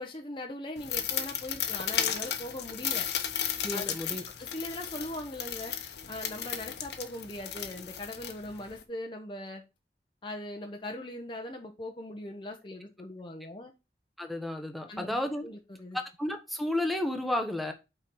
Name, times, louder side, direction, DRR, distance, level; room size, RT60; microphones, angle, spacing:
voice 1, 0.0-3.1 3.7-3.8 4.4-5.8 6.1-9.6 10.2-13.7 14.9-15.2 15.4-16.0, left 1 dB, 30° left, 3 dB, 0.9 m, -40 dB
sound 1, 0.8-8.8, left 9 dB, 70° left, 1.0 m, -34 dB
voice 2, 3.6-4.2 14.2-15.5 15.9-17.7, left 1 dB, ahead, 6 dB, 1.0 m, -32 dB
5.7 x 4.5 x 6.2 m, 0.27 s
head